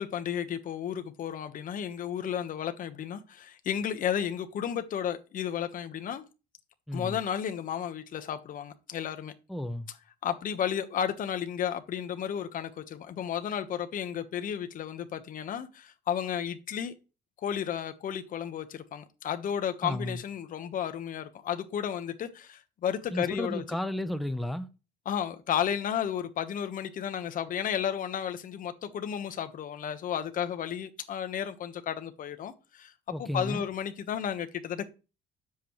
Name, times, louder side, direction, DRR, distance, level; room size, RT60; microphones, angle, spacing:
voice 1, 0.0-6.3 6.9-9.3 10.2-16.9 17.4-23.6 25.0-32.9 33.2-34.9, left 9 dB, 55° left, 1.2 m, -33 dB
voice 2, 6.9-7.2 9.5-9.9 19.8-20.2 23.1-24.7 33.1-33.7, left 1 dB, ahead, 0.8 m, -33 dB
10.0 x 7.7 x 3.1 m
cardioid pair, 110°, 17 cm